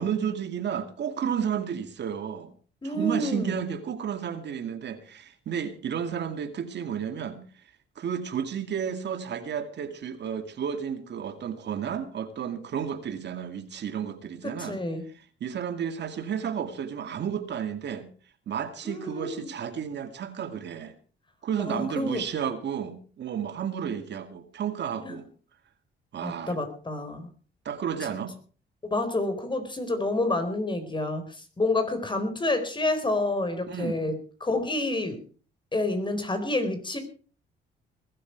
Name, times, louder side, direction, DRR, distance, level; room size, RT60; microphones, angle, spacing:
voice 1, 0.0-2.5 2.8-7.6 8.0-14.8 15.4-18.1 18.5-20.9 21.4-25.2 26.1-26.6 27.6-28.3 33.7-34.0, right 8 dB, 60° right, 2.3 m, -32 dB
voice 2, 2.8-3.6 14.4-15.0 18.8-19.5 21.6-22.2 25.0-25.2 26.2-27.3 28.8-35.2 35.7-37.0, left 2 dB, 25° left, 4.3 m, -29 dB
20.5 x 12.5 x 4.6 m
cardioid pair, 90°, 20 cm